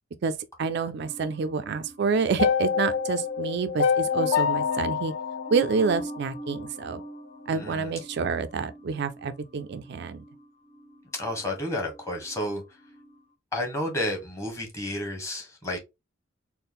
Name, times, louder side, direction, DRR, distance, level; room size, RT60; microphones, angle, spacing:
voice 1, 0.2-5.1 5.5-7.0 7.5-10.2, right 5 dB, 55° right, 0.3 m, -28 dB
sound 1, 1.0-13.2, equal, 35° left, 0.7 m, -44 dB
sound 2, 2.4-6.6, left 6 dB, 70° left, 0.4 m, -26 dB
voice 2, 7.5-7.9 11.1-12.6 13.5-15.8, left 1 dB, 15° left, 1.3 m, -31 dB
4.2 x 2.1 x 3.5 m
head